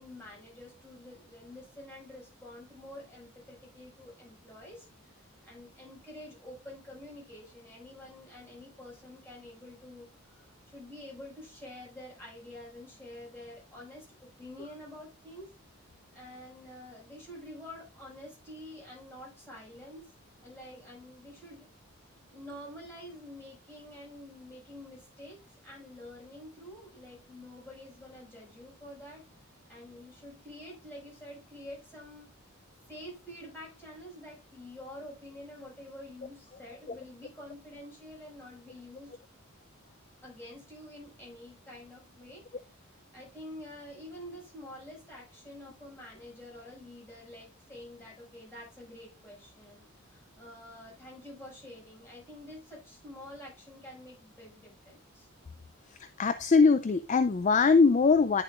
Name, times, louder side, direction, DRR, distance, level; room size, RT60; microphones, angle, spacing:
voice 1, 0.0-15.8 16.1-20.1 20.4-21.7 22.3-32.3 32.9-39.1 40.2-55.3, left 1 dB, 10° left, -4 dB, 5.5 m, -48 dB
voice 2, 56.0-58.4, left 4 dB, 35° left, 11 dB, 0.3 m, -22 dB
10.5 x 6.8 x 2.5 m, 0.26 s
head